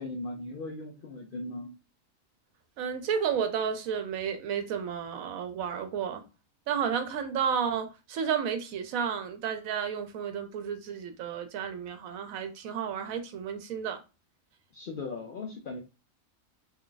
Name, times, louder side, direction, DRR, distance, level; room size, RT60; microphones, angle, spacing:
voice 1, 0.0-1.7 14.7-15.8, left 2 dB, 70° left, 0.5 m, -38 dB
voice 2, 2.8-6.2 6.7-14.0, right 7 dB, 80° right, 1.1 m, -32 dB
2.6 x 2.3 x 3.8 m
omnidirectional pair, 1.4 m